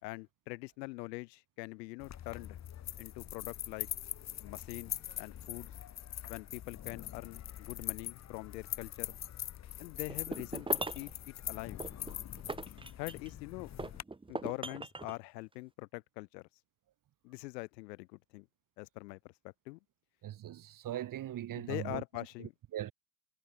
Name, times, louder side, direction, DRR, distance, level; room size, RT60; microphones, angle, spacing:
voice 1, 0.0-2.6 3.0-3.9 4.4-5.7 6.3-9.2 9.8-11.8 13.0-13.7 14.3-16.5 17.2-18.5 18.8-19.8 21.6-22.5, left 24 dB, 85° left, 4.0 m, -44 dB
sound 1, 2.0-14.0, left 11 dB, 35° left, 1.4 m, -42 dB
sound 2, 10.1-11.1 11.8-13.4 13.8-15.2, right 3 dB, 10° right, 1.9 m, -40 dB
voice 2, 20.2-22.0 22.4-22.9, right 12 dB, 40° right, 2.0 m, -40 dB
supercardioid pair, 110°, 49 cm